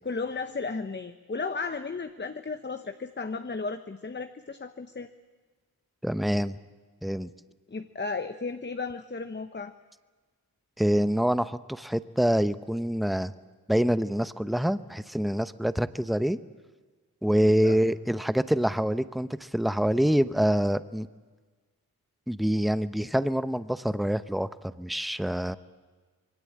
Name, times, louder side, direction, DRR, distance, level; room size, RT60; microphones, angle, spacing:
voice 1, 0.0-5.1 7.7-9.7 17.4-17.8, left 4 dB, 30° left, 9 dB, 1.1 m, -34 dB
voice 2, 6.0-6.6 7.0-7.3 10.8-13.3 13.7-16.4 17.2-21.1 22.3-24.5 24.8-25.6, equal, ahead, 13 dB, 0.9 m, -26 dB
26.0 x 22.5 x 8.7 m, 1.4 s
wide cardioid pair, 90°, 38 cm